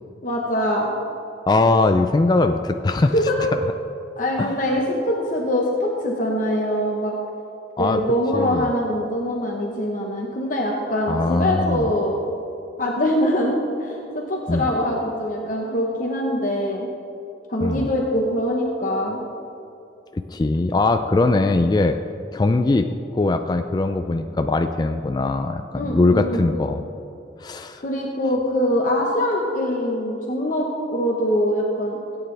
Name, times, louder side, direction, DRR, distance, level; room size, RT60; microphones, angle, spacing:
voice 1, 0.2-0.9 2.5-2.6 3.1-3.5 4.2-7.1 7.8-12.2 12.8-13.5 13.8-16.9 17.5-19.2 25.8-26.5 27.8-32.0, equal, 50° left, -1 dB, 1.1 m, -23 dB
voice 2, 1.5-3.1 4.4-4.5 7.8-8.0 8.3-8.7 11.1-11.9 14.5-14.7 17.6-17.9 20.3-22.0 22.3-22.9 23.1-26.8 27.4-27.8, left 2 dB, 25° left, 7 dB, 0.3 m, -20 dB
17.0 x 9.0 x 3.4 m, 2.7 s
head